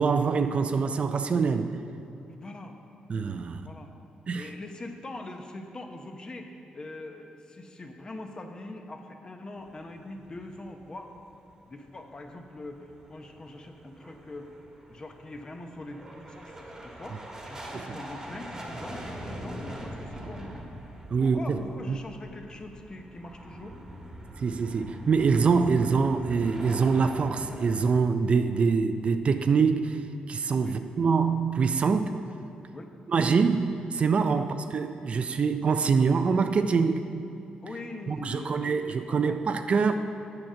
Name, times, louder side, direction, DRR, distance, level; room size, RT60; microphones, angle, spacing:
voice 1, 0.0-1.8 3.1-3.7 4.3-4.5 17.7-18.0 21.1-21.6 21.9-22.0 24.4-30.0 30.3-32.1 33.1-37.0 38.1-40.0, right 5 dB, 45° right, 8 dB, 0.4 m, -25 dB
voice 2, 2.3-2.8 3.6-3.9 4.3-11.1 11.7-14.5 14.9-20.6 21.2-23.8 30.6-30.8 32.7-32.9 34.3-34.5 37.6-39.4, left 2 dB, 30° left, 4 dB, 0.8 m, -42 dB
sound 1, 9.6-11.3 11.6-11.7 12.1-12.2 12.6-27.9, equal, 20° right, 1.3 m, -42 dB
7.8 x 7.2 x 6.3 m, 2.7 s
cardioid pair, 105°, 3 cm